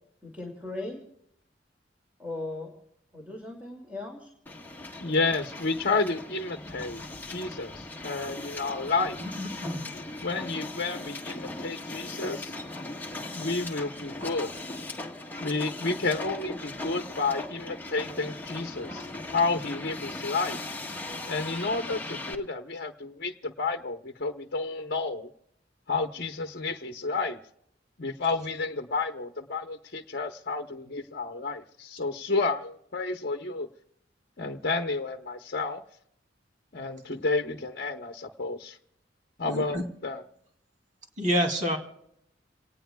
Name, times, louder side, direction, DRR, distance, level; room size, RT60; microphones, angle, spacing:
voice 1, 0.2-1.0 2.2-2.7 3.1-4.3 5.0-5.2 9.8-10.0, left 2 dB, 10° right, 0 dB, 2.4 m, -38 dB
Hiss, 4.5-22.3, left 2 dB, 10° left, 1.5 m, -39 dB
voice 2, 5.0-9.2 10.2-12.5 13.3-14.5 15.4-19.1 19.3-20.6 21.3-25.3 25.9-27.4 28.0-33.7 34.4-35.8 36.7-38.8 39.4-40.2, left 3 dB, 55° left, 5 dB, 1.0 m, -31 dB
voice 3, 9.2-9.9 39.5-39.8 41.2-41.8, equal, 40° right, 2 dB, 2.9 m, -28 dB
28.5 x 19.0 x 2.3 m, 0.76 s
head